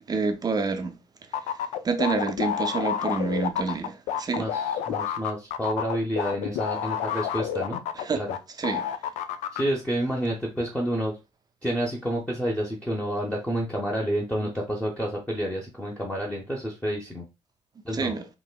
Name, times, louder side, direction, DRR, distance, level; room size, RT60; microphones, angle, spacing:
voice 1, 0.1-1.0 1.8-4.5 8.0-8.2 8.6-8.9 17.9-18.3, right 4 dB, 25° right, 0.6 m, -27 dB
sound 1, 1.3-8.4 8.6-9.6, left 9 dB, 50° left, 0.4 m, -29 dB
voice 2, 4.4-7.8 8.1-8.4 9.5-11.1 11.6-17.2 17.8-18.1, equal, 10° left, 0.9 m, -29 dB
4.1 x 3.0 x 2.2 m
figure-of-eight pair, 45°, 15 cm